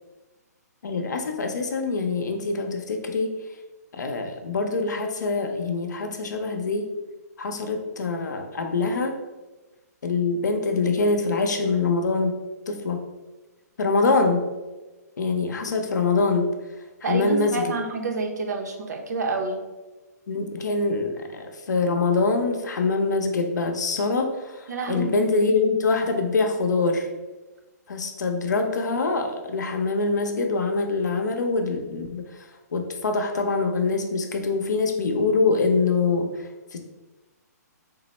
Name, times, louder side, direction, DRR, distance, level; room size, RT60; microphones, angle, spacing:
voice 1, 0.8-3.4 3.9-6.9 7.4-9.2 10.0-12.3 12.7-13.1 13.8-14.5 15.2-16.5 17.0-17.8 20.3-27.1 27.9-32.3 32.7-36.8, left 3 dB, 85° left, 4 dB, 0.6 m, -24 dB
voice 2, 17.0-19.6 24.7-25.2, right 3 dB, 70° right, 3 dB, 0.7 m, -28 dB
3.7 x 2.0 x 4.1 m, 1.2 s
hypercardioid pair, 150°, 9 cm